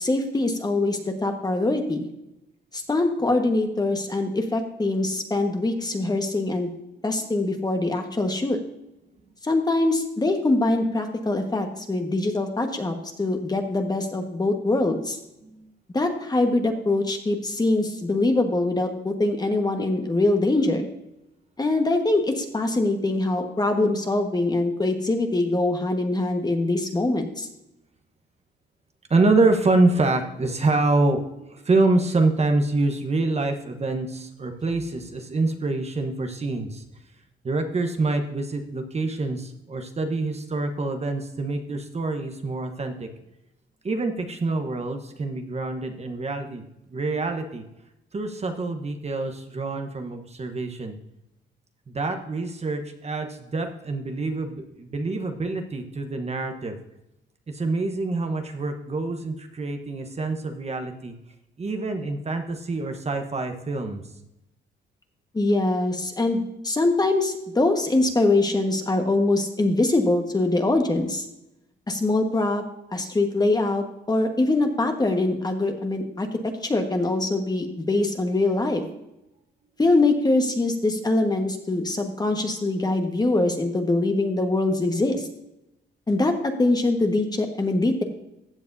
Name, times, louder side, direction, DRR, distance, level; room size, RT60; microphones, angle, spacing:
voice 1, 0.0-2.1 2.9-6.7 7.0-8.6 9.4-15.2 15.9-20.9 21.6-27.5 65.3-71.2 71.9-72.6 72.9-76.3 76.6-78.8 79.8-85.2 86.1-88.0, left 2 dB, 20° left, 4 dB, 1.4 m, -23 dB
voice 2, 29.1-36.8 37.4-43.1 43.8-46.6 46.9-47.6 48.1-51.0 51.9-56.8 57.5-61.1 61.6-64.0, right 2 dB, 30° right, 5 dB, 1.1 m, -26 dB
15.0 x 7.6 x 2.7 m, 0.88 s
cardioid pair, 90°, 20 cm